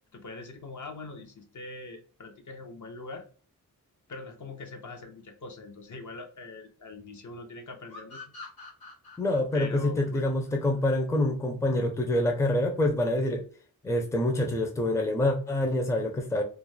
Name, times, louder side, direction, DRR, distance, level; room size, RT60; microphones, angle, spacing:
voice 1, 0.1-3.3 4.1-8.4 9.5-10.3, left 3 dB, 50° left, 0.6 m, -42 dB
sound 1, 7.9-11.3, left 3 dB, 80° left, 0.9 m, -47 dB
voice 2, 9.2-13.4 13.8-16.4, left 1 dB, 10° left, 0.5 m, -26 dB
2.4 x 2.0 x 3.1 m
cardioid pair, 50°, 37 cm